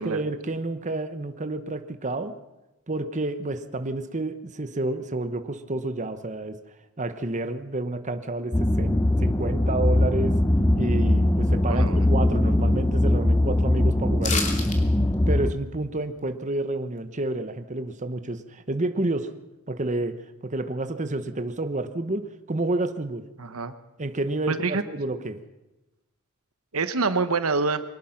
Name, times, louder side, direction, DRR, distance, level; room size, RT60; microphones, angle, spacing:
voice 1, 0.0-2.4 2.9-6.6 7.0-10.4 10.8-14.5 15.3-19.3 19.7-23.3 24.0-25.4, right 2 dB, 35° right, 9 dB, 1.0 m, -30 dB
sound 1, 8.5-15.5, left 1 dB, 10° left, 0.8 m, -21 dB
voice 2, 11.7-12.1 23.4-23.7 24.5-24.8 26.7-27.8, right 4 dB, 75° right, 11 dB, 1.2 m, -26 dB
sound 2, 14.2-14.8 15.1-15.2, left 4 dB, 35° left, 3.0 m, -28 dB
24.0 x 19.5 x 5.9 m, 1.0 s
head